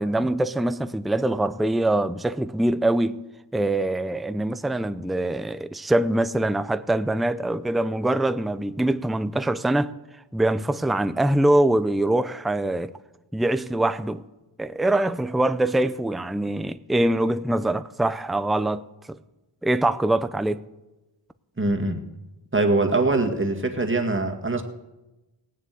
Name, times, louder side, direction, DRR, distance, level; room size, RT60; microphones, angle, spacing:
voice 1, 0.0-3.2 3.5-9.9 10.3-12.9 13.3-14.2 14.6-19.2 19.6-20.7, right 1 dB, ahead, 0.5 m, -23 dB
voice 2, 21.6-22.0 22.5-24.6, right 2 dB, 25° right, 1.9 m, -23 dB
17.0 x 7.6 x 8.4 m
cardioid pair, 50°, 48 cm